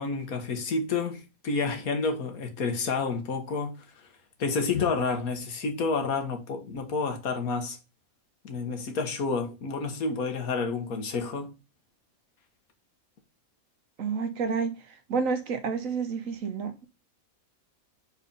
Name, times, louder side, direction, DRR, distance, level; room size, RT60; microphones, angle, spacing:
voice 1, 0.0-3.8 4.4-7.8 8.4-11.5, left 4 dB, 80° left, 1.7 m, -29 dB
voice 2, 14.0-16.8, right 5 dB, 65° right, 1.3 m, -30 dB
4.7 x 4.2 x 5.2 m
omnidirectional pair, 1.5 m